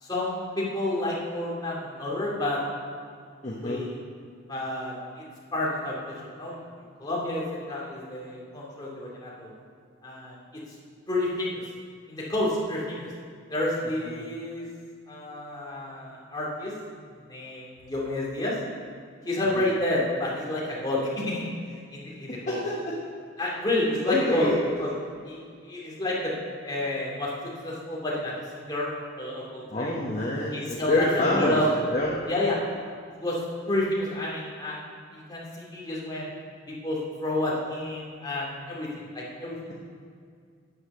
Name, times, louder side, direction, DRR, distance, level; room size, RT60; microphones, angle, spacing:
voice 1, 0.0-2.6 3.6-3.9 4.5-5.2 5.5-6.6 7.0-9.5 10.0-10.4 11.1-11.6 12.1-13.1 13.5-14.6 15.1-16.7 17.3-18.6 19.2-22.6 23.4-24.5 24.8-24.9 25.2-26.3 26.6-27.3 27.6-29.9 30.5-31.6 32.3-32.6 32.8-33.4 33.7-34.8 35.1-36.3 36.7-39.7, left 1 dB, 20° left, -5 dB, 2.4 m, -30 dB
voice 2, 3.4-3.8 22.3-23.0 24.1-24.6 29.7-31.6 31.9-32.2, left 1 dB, 35° left, -4 dB, 1.1 m, -27 dB
9.7 x 8.0 x 6.5 m, 2.1 s
head